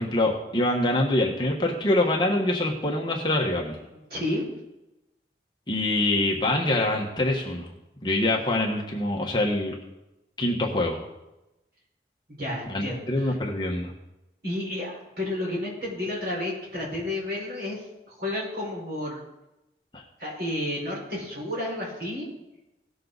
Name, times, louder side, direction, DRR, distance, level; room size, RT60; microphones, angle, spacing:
voice 1, 0.0-3.7 5.7-7.7 8.0-9.7 10.4-11.0 12.7-13.9 19.9-20.0, left 1 dB, 25° left, -1 dB, 1.3 m, -25 dB
voice 2, 4.1-4.4 12.3-13.3 14.4-17.8 18.2-19.2 20.2-22.2, left 1 dB, 55° right, -4 dB, 5.0 m, -31 dB
17.5 x 6.7 x 4.0 m, 0.94 s
head